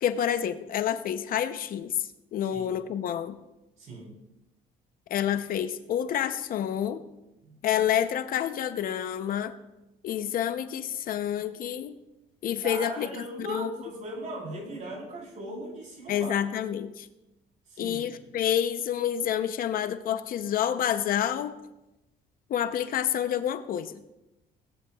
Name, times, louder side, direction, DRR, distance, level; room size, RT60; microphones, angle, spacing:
voice 1, 0.0-3.4 5.1-7.0 7.6-9.5 10.0-11.9 12.4-13.7 16.1-17.1 17.8-21.5 22.5-23.9, left 10 dB, 60° left, 11 dB, 0.7 m, -28 dB
voice 2, 3.8-4.1 7.4-7.6 12.6-16.4 17.7-18.2, right 2 dB, 45° right, -1 dB, 3.8 m, -39 dB
17.5 x 9.5 x 2.3 m, 0.95 s
cardioid pair, 110°, 17 cm